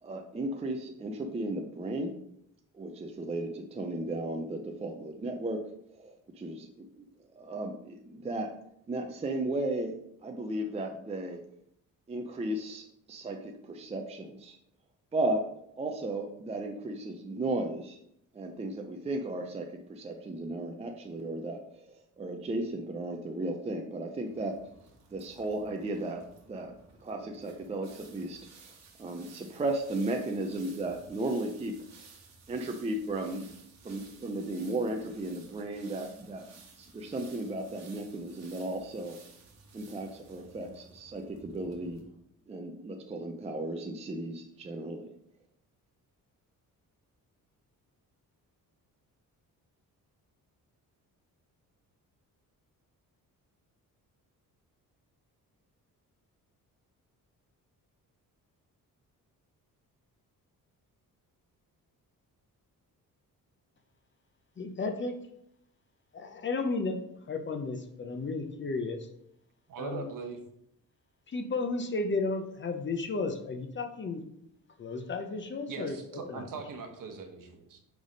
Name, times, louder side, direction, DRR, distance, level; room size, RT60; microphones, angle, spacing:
voice 1, 0.0-2.1 2.7-5.6 5.9-7.0 7.3-8.5 8.9-10.0 10.2-11.4 12.1-14.6 15.1-15.5 15.8-18.0 18.3-24.6 25.1-26.7 27.0-28.7 29.0-31.7 32.5-33.5 33.8-39.2 39.7-42.0 42.5-45.1, right 2 dB, 20° right, 3 dB, 0.5 m, -35 dB
sound 1, 24.2-42.0, right 4 dB, 50° right, 1.3 m, -56 dB
voice 2, 64.6-65.2 66.1-69.1 69.8-70.1 71.3-74.2 74.8-76.5, left 3 dB, 35° left, 5 dB, 0.7 m, -33 dB
voice 3, 69.7-70.4 75.7-77.8, right 4 dB, 70° right, 5 dB, 1.1 m, -40 dB
6.3 x 3.5 x 5.1 m, 0.75 s
cardioid pair, 140°, 35 cm